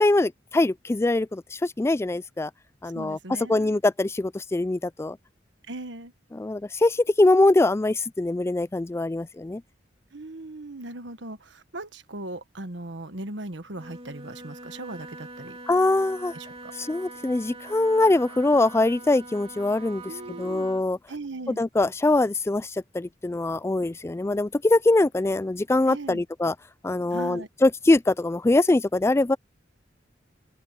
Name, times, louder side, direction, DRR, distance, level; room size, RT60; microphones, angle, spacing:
voice 1, 0.0-2.5 2.8-3.2 3.5-5.2 6.4-9.6 15.7-16.3 16.9-20.0 20.4-21.0 21.6-26.5 26.8-29.4, left 2 dB, 15° left, 0.3 m, -23 dB
voice 2, 2.9-3.8 5.7-6.1 10.1-15.6 16.3-16.7 20.0-20.7 21.1-21.6 25.9-26.2 27.1-27.5, right 2 dB, 75° right, 1.5 m, -38 dB
Wind instrument woodwind instrument, 13.7-20.9, right 2 dB, 30° right, 2.8 m, -43 dB
open air
head